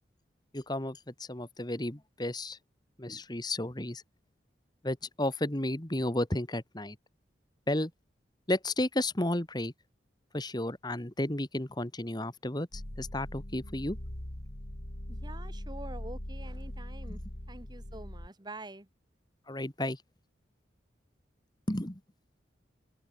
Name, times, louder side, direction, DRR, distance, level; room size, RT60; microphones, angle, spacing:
voice 1, 0.5-2.6 3.0-4.0 4.8-7.0 7.7-7.9 8.5-9.7 10.3-14.0 17.1-17.2 19.5-20.0 21.7-22.0, left 1 dB, 20° left, 1.9 m, -33 dB
sound 1, 12.7-18.3, left 1 dB, 55° left, 2.7 m, -41 dB
voice 2, 15.1-17.2 17.5-18.9, right 2 dB, 25° right, 1.7 m, -46 dB
open air
head